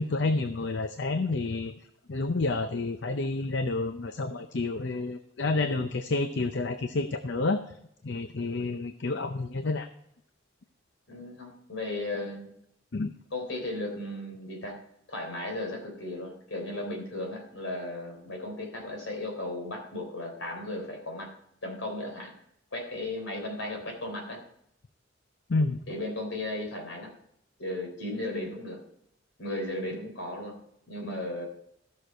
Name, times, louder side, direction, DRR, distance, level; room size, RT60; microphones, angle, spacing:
voice 1, 0.0-1.7 2.1-7.6 8.0-9.9 12.9-13.1 25.5-25.8, left 3 dB, 60° left, 8 dB, 0.6 m, -29 dB
voice 2, 11.1-12.5 13.3-14.8 15.1-21.3 21.6-22.4 22.7-24.4 25.9-27.1 27.6-28.8 29.4-30.6 30.9-31.5, left 1 dB, 80° left, 2 dB, 3.5 m, -35 dB
15.0 x 6.6 x 4.5 m, 0.73 s
head